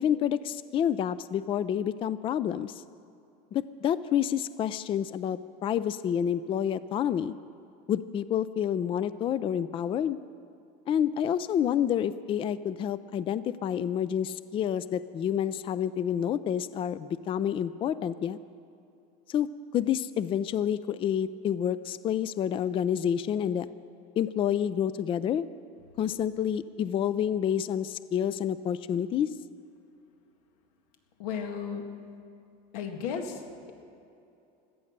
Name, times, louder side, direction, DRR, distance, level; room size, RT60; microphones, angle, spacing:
voice 1, 0.0-2.8 3.5-7.3 7.9-10.2 10.9-18.4 19.3-23.7 24.2-25.4 26.0-29.3, left 9 dB, 25° left, 15 dB, 0.4 m, -28 dB
voice 2, 31.2-31.8 32.7-33.4, left 7 dB, 90° left, 4 dB, 2.0 m, -34 dB
17.0 x 12.5 x 6.6 m, 2.7 s
cardioid pair, 140°, 19 cm